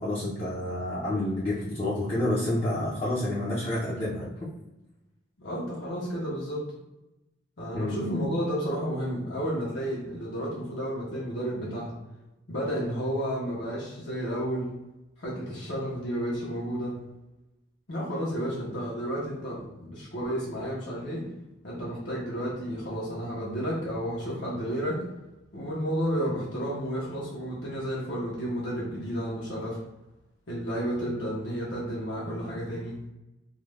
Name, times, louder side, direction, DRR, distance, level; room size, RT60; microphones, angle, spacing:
voice 1, 0.0-4.5 7.7-7.9, left 1 dB, 30° left, -8 dB, 0.5 m, -29 dB
voice 2, 5.4-6.7 7.6-12.0 12.5-14.7 15.2-17.0 17.9-21.3 21.6-25.1 25.5-29.8 30.5-33.0, equal, 65° left, -6 dB, 0.7 m, -31 dB
2.3 x 2.1 x 3.2 m, 0.96 s
head